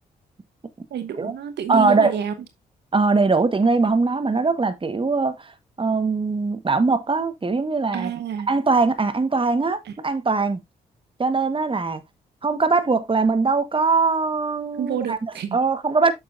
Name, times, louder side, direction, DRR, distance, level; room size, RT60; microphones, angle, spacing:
voice 1, 0.9-2.3 7.9-8.5 9.8-9.9 14.8-15.6, right 8 dB, 70° right, 1.1 m, -28 dB
voice 2, 1.7-2.1 2.9-8.1 8.5-10.6 11.2-12.0 12.4-15.2 15.5-16.1, right 4 dB, 30° right, 1.3 m, -21 dB
8.0 x 6.6 x 2.6 m
supercardioid pair, 45°, 18 cm